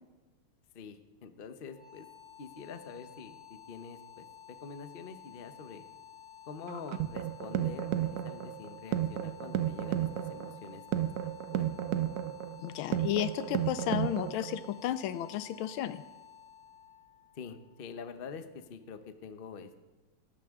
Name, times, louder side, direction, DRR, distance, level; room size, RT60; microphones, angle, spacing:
voice 1, 0.7-2.1 2.4-5.8 6.5-10.8 11.2-11.7 17.3-19.9, left 5 dB, 50° left, 8 dB, 0.7 m, -46 dB
sound 1, 1.6-18.6, left 9 dB, ahead, 5.2 m, -53 dB
sound 2, 6.7-14.7, right 11 dB, 65° right, 1.0 m, -33 dB
voice 2, 12.6-16.0, left 11 dB, 80° left, 13 dB, 1.5 m, -33 dB
18.0 x 14.5 x 3.7 m, 1.2 s
omnidirectional pair, 2.2 m